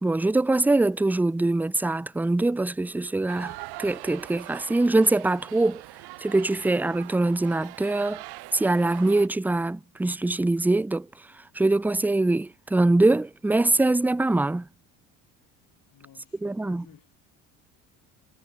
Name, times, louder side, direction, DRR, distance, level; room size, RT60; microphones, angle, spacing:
voice 1, 0.0-5.8 6.2-8.2 8.5-11.1 11.5-14.7 16.4-16.8, right 2 dB, 5° right, 0.6 m, -23 dB
sound 1, 3.3-9.3, right 22 dB, 65° right, 1.2 m, -42 dB
voice 2, 15.9-17.1, left 11 dB, 50° left, 7.0 m, -54 dB
supercardioid pair, 75°, 41 cm